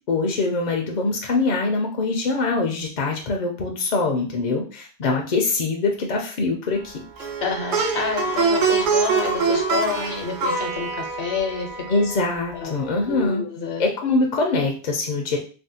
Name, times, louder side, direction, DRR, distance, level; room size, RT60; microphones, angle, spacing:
voice 1, 0.1-7.0 11.9-13.4 13.8-15.4, left 3 dB, 55° left, 1 dB, 0.5 m, -23 dB
Plucked string instrument, 7.2-12.4, right 4 dB, 55° right, 0.7 m, -24 dB
voice 2, 7.4-11.8 12.5-12.7 13.1-13.8, left 5 dB, 80° left, 2 dB, 1.0 m, -29 dB
3.4 x 2.2 x 2.7 m, 0.38 s
omnidirectional pair, 1.1 m